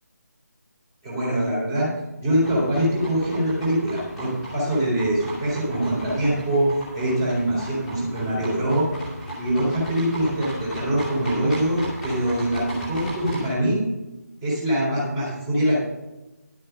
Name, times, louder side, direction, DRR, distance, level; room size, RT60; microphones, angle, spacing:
voice 1, 1.0-1.9 2.2-8.9 9.4-13.8 14.4-15.7, right 1 dB, 20° right, -6 dB, 3.7 m, -23 dB
sound 1, 2.4-13.5, equal, 5° right, 2.5 m, -36 dB
11.5 x 7.7 x 5.5 m, 1.0 s
figure-of-eight pair, 155°, 9 cm